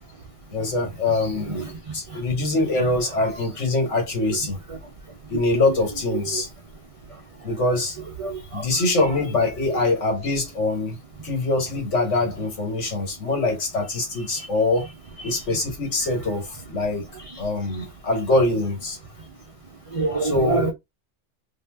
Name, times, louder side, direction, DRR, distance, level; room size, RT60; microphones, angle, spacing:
voice 1, 0.5-1.7 1.9-4.6 5.3-6.5 7.4-8.0 8.5-11.0 11.2-14.9 15.2-17.1 17.4-19.0 20.2-20.7, left 2 dB, 70° left, 1.5 m, -23 dB
voice 2, 1.5-2.2 4.7-4.8 5.3-5.4 5.7-5.8 6.2-6.4 7.1-7.5 8.2-8.9 14.3-14.5 15.2-15.4 17.2-17.4 19.2-19.3 19.9-20.7, right 3 dB, 65° right, 0.3 m, -29 dB
2.7 x 2.0 x 3.3 m
omnidirectional pair, 1.3 m